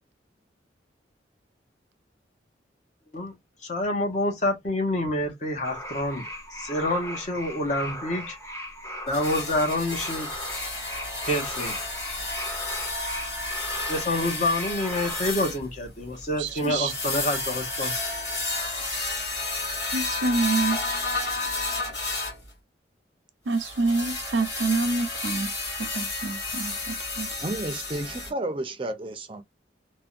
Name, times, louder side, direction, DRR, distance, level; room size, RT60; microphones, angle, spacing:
voice 1, 3.6-6.2 6.5-8.4 9.1-10.3 11.3-11.8 13.9-18.0, left 1 dB, 40° left, 1.0 m, -27 dB
sound 1, 5.6-15.3, equal, 15° left, 0.7 m, -38 dB
sound 2, 9.1-22.4 23.5-28.3, left 2 dB, 60° left, 2.3 m, -31 dB
voice 2, 16.4-16.9 19.9-20.8 23.5-25.5 25.8-27.3, right 3 dB, 90° right, 0.6 m, -27 dB
voice 3, 27.4-29.4, right 1 dB, 30° right, 0.5 m, -31 dB
3.4 x 2.2 x 2.5 m
head